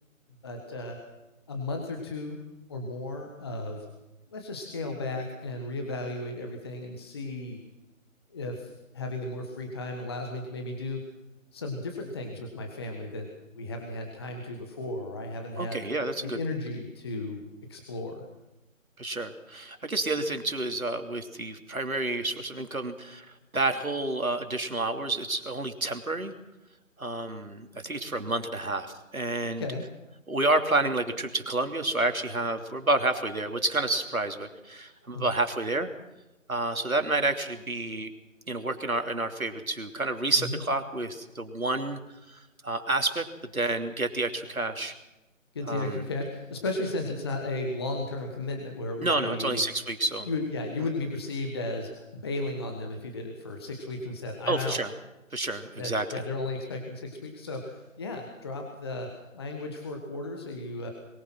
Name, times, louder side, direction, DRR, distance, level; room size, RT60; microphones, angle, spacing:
voice 1, 0.4-1.0 1.5-2.4 2.7-3.9 4.3-7.6 8.3-11.0 11.5-13.3 13.5-15.8 16.2-17.4 17.7-18.2 29.6-29.8 35.1-35.3 40.4-40.6 45.5-49.6 50.2-54.8 55.8-60.9, left 2 dB, 20° left, 3 dB, 1.5 m, -34 dB
voice 2, 15.6-16.4 19.0-23.3 23.5-26.3 27.0-28.9 29.1-29.6 30.3-35.9 36.5-38.1 38.5-42.0 42.3-43.3 43.5-44.9 45.7-46.0 49.0-50.3 54.5-54.9 55.3-56.2, right 2 dB, 85° right, 6 dB, 3.0 m, -29 dB
22.0 x 20.5 x 6.0 m, 0.98 s
figure-of-eight pair, 160°, 41 cm